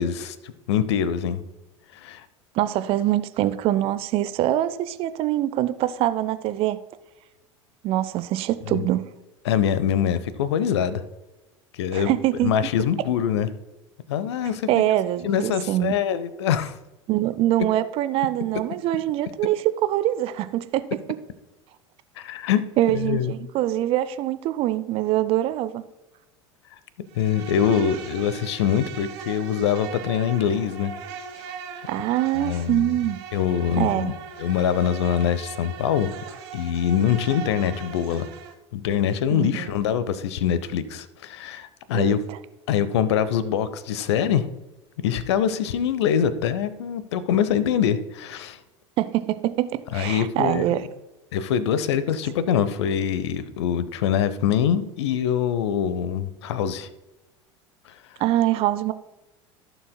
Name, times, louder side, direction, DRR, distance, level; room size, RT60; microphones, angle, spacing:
voice 1, 0.0-1.4 1.9-2.2 8.7-8.9 9.4-11.0 11.7-12.2 12.4-13.5 14.1-14.8 15.2-16.7 22.2-22.6 22.9-23.3 27.2-30.9 32.3-32.9 33.3-34.1 34.4-36.1 36.5-38.3 38.7-42.2 42.7-44.5 45.0-48.6 49.9-50.8 51.3-56.9, left 8 dB, 60° left, 15 dB, 0.7 m, -24 dB
voice 2, 2.5-6.8 7.8-9.0 11.9-12.5 14.7-15.9 17.1-20.9 22.8-25.8 31.9-33.2 33.8-34.1 39.3-39.7 41.9-42.4 49.0-50.9 58.2-58.9, right 13 dB, 35° right, 13 dB, 0.5 m, -24 dB
Insect, 27.1-38.5, right 6 dB, 55° right, 1.3 m, -39 dB
15.5 x 6.9 x 2.2 m, 1.1 s
figure-of-eight pair, 75°, 16 cm